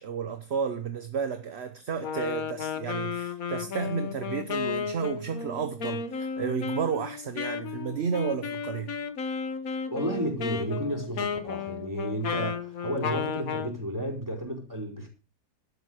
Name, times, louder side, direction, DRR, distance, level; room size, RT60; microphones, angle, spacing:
voice 1, 0.0-8.9, right 6 dB, 45° right, 1.1 m, -32 dB
Wind instrument woodwind instrument, 2.0-13.7, left 6 dB, 60° left, 1.6 m, -33 dB
voice 2, 9.9-15.1, equal, 10° right, 4.7 m, -32 dB
12.5 x 9.2 x 6.5 m
omnidirectional pair, 1.8 m